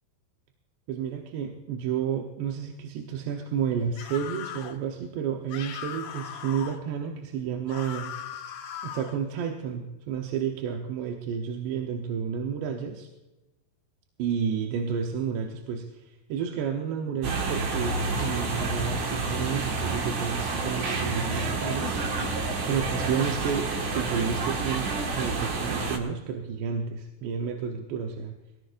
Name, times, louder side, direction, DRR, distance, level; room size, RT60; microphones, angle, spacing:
voice 1, 0.9-8.1 8.8-13.1 14.2-22.0 22.6-23.7 23.9-28.4, right 7 dB, 85° right, 2 dB, 3.2 m, -31 dB
sound 1, 4.0-4.8 5.5-6.8 7.7-9.2, left 9 dB, 80° left, 3.9 m, -38 dB
sound 2, 17.2-26.0, right 3 dB, 50° right, 2.7 m, -29 dB
22.5 x 17.0 x 2.6 m, 1.0 s
omnidirectional pair, 4.8 m